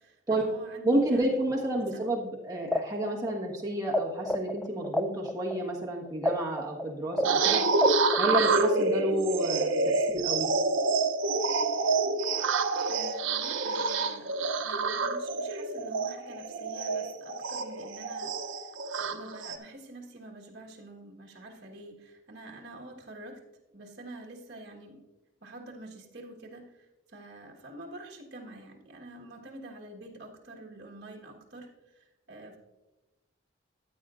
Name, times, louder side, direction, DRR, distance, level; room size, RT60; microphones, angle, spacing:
voice 1, 0.0-1.4 1.7-2.0 12.9-23.4 23.7-25.0 25.4-32.6, right 2 dB, 55° right, -1 dB, 1.4 m, -47 dB
voice 2, 0.8-7.6 8.2-10.5, right 1 dB, 20° right, -2 dB, 1.4 m, -30 dB
sound 1, 2.6-4.0 4.3-8.7, left 1 dB, 5° left, 0.3 m, -30 dB
sound 2, 7.2-19.6, right 3 dB, 80° right, 0.7 m, -28 dB
14.5 x 8.9 x 2.5 m, 1.1 s
head